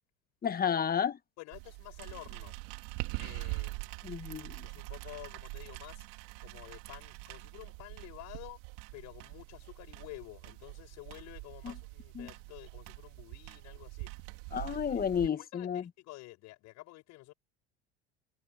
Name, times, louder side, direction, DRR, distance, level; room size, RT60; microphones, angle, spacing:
voice 1, 0.4-1.2 4.0-4.6 11.6-11.7 12.1-12.3 14.5-15.8, left 8 dB, 30° left, 1.5 m, -31 dB
voice 2, 1.4-2.5 3.2-4.0 4.6-6.1 6.4-8.6 8.9-14.1 14.9-17.3, left 19 dB, 60° left, 6.9 m, -50 dB
sound 1, 1.5-15.3, right 30 dB, 65° right, 4.7 m, -44 dB
hypercardioid pair, 80°, 32 cm